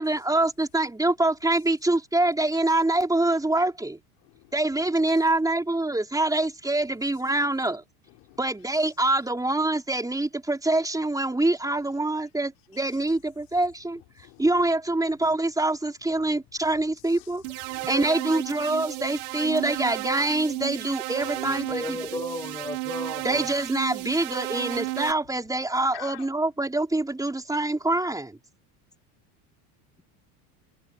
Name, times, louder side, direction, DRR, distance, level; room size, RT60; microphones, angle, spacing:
voice 1, 0.0-4.0 4.5-7.8 8.4-14.0 14.4-17.4 17.9-22.2 23.2-28.4, right 2 dB, 10° right, 4.4 m, -25 dB
voice 2, 4.2-4.5 8.1-8.4 8.8-8.9 12.7-13.0 13.9-14.5 16.2-16.3 16.6-18.1 19.4-19.6 21.1-22.0 23.2-23.3 23.8-24.3 25.9-26.3, left 23 dB, 65° left, 4.4 m, -49 dB
sound 1, 17.4-25.1, right 20 dB, 85° right, 1.0 m, -33 dB
voice 3, 21.4-23.4, left 2 dB, 10° left, 6.2 m, -34 dB
supercardioid pair, 120°, 45 cm